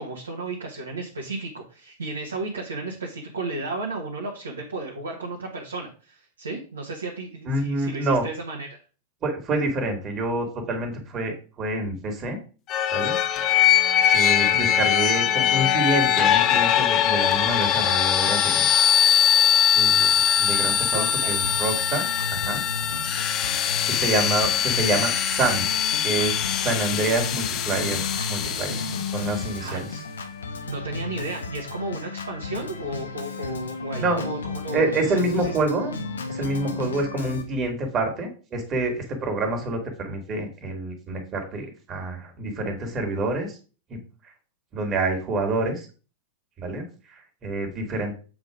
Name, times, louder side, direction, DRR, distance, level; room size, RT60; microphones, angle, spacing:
voice 1, 0.0-8.8 20.9-21.4 29.6-29.8 30.7-34.9 35.1-35.5, right 2 dB, 75° right, -1 dB, 1.4 m, -34 dB
voice 2, 7.5-8.2 9.2-12.4 12.9-13.7 14.1-18.7 19.7-22.6 23.9-25.7 26.0-28.9 29.1-29.9 34.0-34.3 34.7-35.9 36.3-43.6 43.9-44.0 44.2-44.3 44.7-45.9 46.6-48.1, right 2 dB, 30° right, 3 dB, 2.3 m, -27 dB
sound 1, 12.7-29.4, left 10 dB, 40° left, 0.6 m, -22 dB
Organ, 21.4-37.4, left 3 dB, 75° left, 1.0 m, -34 dB
7.7 x 3.8 x 4.9 m, 0.36 s
figure-of-eight pair, 90°, 0 cm